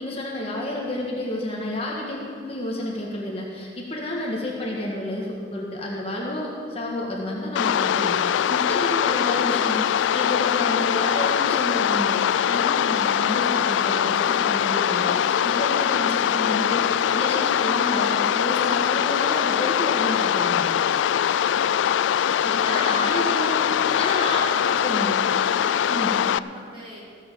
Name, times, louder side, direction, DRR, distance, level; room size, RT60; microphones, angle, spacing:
voice 1, 0.0-12.2 12.5-20.7 22.2-23.5 24.0-24.4 24.8-25.2 25.9-26.2, left 1 dB, 30° left, -3 dB, 1.7 m, -30 dB
sound 1, 7.6-26.4, left 9 dB, 90° left, 0.3 m, -22 dB
voice 2, 22.1-24.8 25.4-27.0, equal, 30° right, -7 dB, 4.5 m, -40 dB
15.5 x 8.4 x 7.0 m, 2.2 s
head